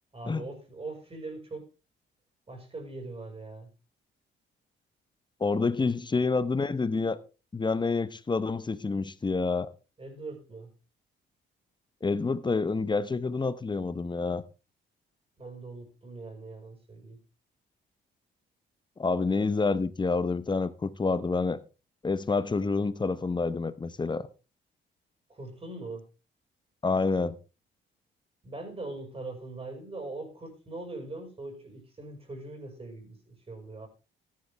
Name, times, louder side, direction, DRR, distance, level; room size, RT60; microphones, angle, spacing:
voice 1, 0.1-1.7 2.5-3.7 5.6-6.0 10.0-10.7 15.4-17.2 25.3-26.1 28.4-33.9, right 2 dB, 30° right, 5.4 m, -41 dB
voice 2, 5.4-7.2 7.5-9.7 12.0-14.4 19.0-21.6 22.0-24.3 26.8-27.4, left 4 dB, 20° left, 1.0 m, -28 dB
14.0 x 10.5 x 3.5 m
cardioid pair, 90°, 20 cm